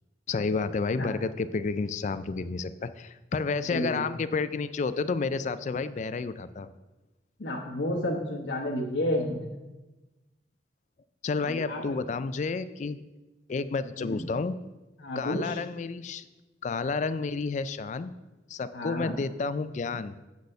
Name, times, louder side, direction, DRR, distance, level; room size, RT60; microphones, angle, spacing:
voice 1, 0.3-6.7 11.2-13.0 13.5-14.5 15.2-16.3 16.6-18.1 18.5-20.2, left 4 dB, 40° left, 13 dB, 0.3 m, -30 dB
voice 2, 3.7-4.0 7.4-9.6 11.4-12.0 14.0-14.3 15.0-15.6 18.7-19.1, left 1 dB, 90° left, -2 dB, 1.0 m, -31 dB
8.2 x 4.1 x 6.4 m, 1.1 s
head